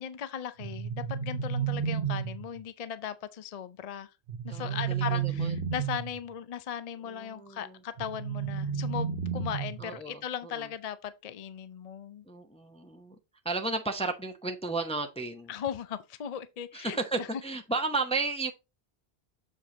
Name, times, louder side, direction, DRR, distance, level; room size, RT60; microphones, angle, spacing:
voice 1, 0.0-4.1 4.4-12.3 15.5-17.3, left 9 dB, 45° left, 0.5 m, -38 dB
sound 1, 0.6-2.6 4.3-6.2 8.0-10.0, right 7 dB, 65° right, 1.2 m, -32 dB
voice 2, 4.5-5.5 7.0-7.7 9.8-10.2 10.5-10.7 12.3-13.1 13.4-15.5 16.7-18.5, right 3 dB, 5° left, 0.7 m, -33 dB
7.3 x 4.7 x 3.8 m
omnidirectional pair, 1.1 m